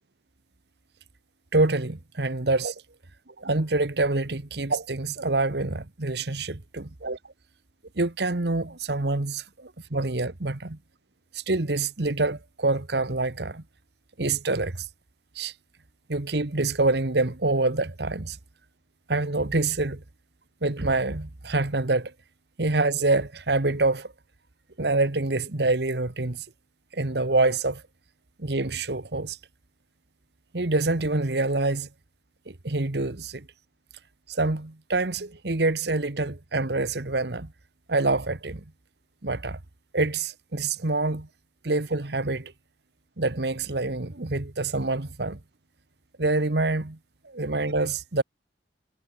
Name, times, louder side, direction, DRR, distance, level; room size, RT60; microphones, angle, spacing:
voice 1, 1.5-2.8 3.3-7.2 7.9-10.8 11.3-13.6 14.2-14.9 15.3-15.5 16.1-18.4 19.1-20.0 20.6-22.1 22.6-24.1 24.8-26.4 26.9-27.8 28.4-29.4 30.5-31.9 32.5-33.5 34.3-37.5 37.9-38.7 39.2-39.6 39.9-41.3 41.6-42.5 43.2-45.4 46.2-47.0 47.2-48.2, right 2 dB, 65° right, 1.3 m, -26 dB
head